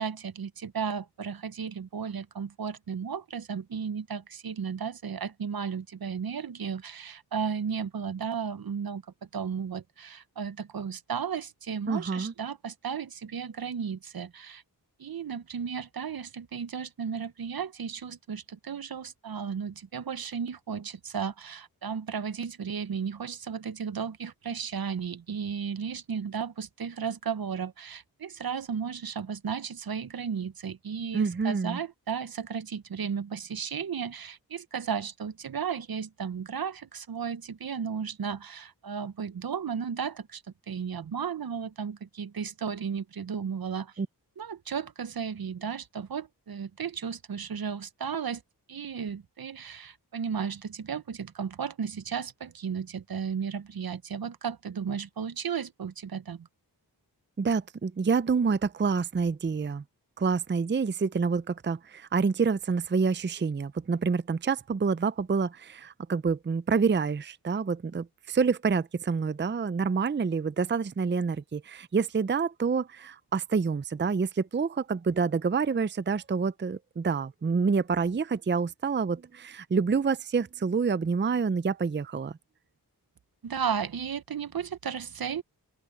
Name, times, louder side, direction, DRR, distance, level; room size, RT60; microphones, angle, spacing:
voice 1, 0.0-9.0 9.3-14.6 15.0-43.9 44.4-48.4 48.7-56.5 83.4-85.4, right 7 dB, 60° right, 0.8 m, -34 dB
voice 2, 11.9-12.3 31.1-31.8 44.0-44.1 57.4-59.8 60.2-82.4, right 5 dB, 25° right, 0.6 m, -27 dB
open air
cardioid pair, 50°, 41 cm